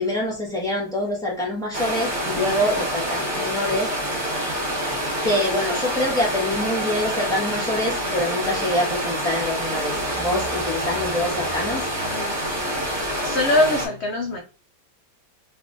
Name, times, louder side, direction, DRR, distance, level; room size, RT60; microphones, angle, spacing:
voice 1, 0.0-3.9 4.8-11.9, left 1 dB, ahead, 1.3 m, -25 dB
sound 1, 1.7-13.9, equal, 40° right, 2.0 m, -27 dB
voice 2, 12.0-12.9 13.2-14.4, left 1 dB, 90° left, 0.5 m, -24 dB
4.0 x 3.4 x 2.5 m
omnidirectional pair, 1.9 m